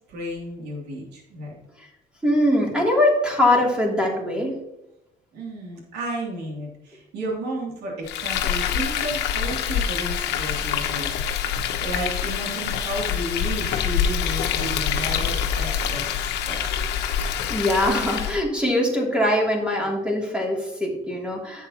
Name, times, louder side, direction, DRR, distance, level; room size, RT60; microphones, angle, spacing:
voice 1, 0.1-1.5 5.3-11.1 11.8-16.6, right 1 dB, 80° right, -2 dB, 3.0 m, -33 dB
voice 2, 2.2-4.6 17.5-21.7, left 1 dB, 5° right, -2 dB, 3.0 m, -22 dB
Frying (food), 8.1-18.4, left 8 dB, 85° left, 1.0 m, -26 dB
10.5 x 8.0 x 3.0 m, 0.86 s
cardioid pair, 110°, 17 cm